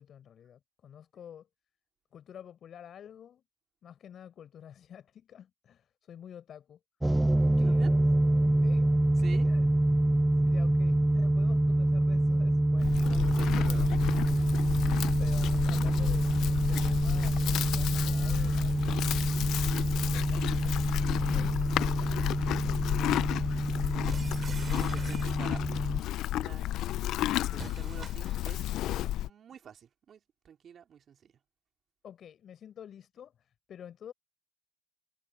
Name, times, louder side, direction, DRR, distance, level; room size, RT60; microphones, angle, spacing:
voice 1, 0.0-1.5 2.1-3.4 3.8-6.8 7.6-8.1 8.6-8.9 9.2-9.7 10.4-13.2 14.4-14.8 15.2-19.4 20.1-20.8 21.1-22.9 32.0-34.1, left 9 dB, 60° left, 4.5 m, -50 dB
sound 1, 7.0-26.0, right 1 dB, 10° right, 0.7 m, -27 dB
voice 2, 7.5-8.0 9.1-9.5 12.7-13.9 23.8-24.2 24.6-25.6 26.3-26.7 27.5-28.7 29.2-31.3, right 8 dB, 55° right, 2.5 m, -48 dB
Livestock farm animals working animals, 12.8-29.3, left 14 dB, 75° left, 0.5 m, -32 dB
sound 2, 24.1-25.8 27.5-28.7, right 5 dB, 40° right, 2.8 m, -45 dB
supercardioid pair, 75°, 0 cm